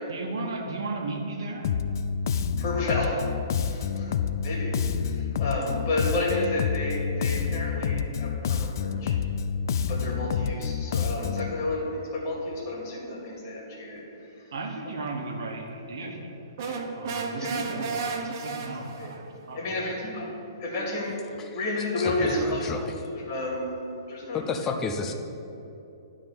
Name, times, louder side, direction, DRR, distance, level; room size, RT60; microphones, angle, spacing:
voice 1, 0.1-1.7 14.5-16.3 16.9-20.0, right 3 dB, 70° right, 3 dB, 1.4 m, -35 dB
Bass guitar, 1.6-11.5, left 7 dB, 55° left, 0.4 m, -28 dB
voice 2, 2.6-3.2 3.6-4.1 4.4-4.7 5.0-9.1 9.9-14.0 16.6-16.9 17.4-17.5 19.0-19.1 19.5-20.3 20.6-22.7 23.3-24.4, left 2 dB, 35° left, -3 dB, 2.1 m, -31 dB
sound 1, 16.6-19.2, right 4 dB, 45° right, 0.8 m, -33 dB
voice 3, 22.0-23.0 24.3-25.1, left 4 dB, 15° left, 5 dB, 0.6 m, -31 dB
11.0 x 3.8 x 6.7 m, 3.0 s
hypercardioid pair, 150°, 2 cm